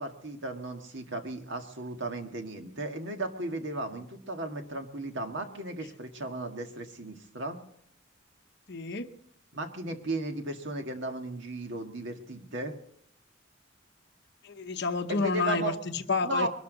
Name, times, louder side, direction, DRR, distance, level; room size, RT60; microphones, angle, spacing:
voice 1, 0.0-7.6 9.5-12.7 15.1-15.8 16.2-16.5, right 2 dB, 65° right, 5 dB, 1.8 m, -35 dB
voice 2, 8.7-9.1 14.4-16.5, left 4 dB, 60° left, 8 dB, 1.0 m, -30 dB
22.5 x 12.5 x 4.0 m, 0.67 s
head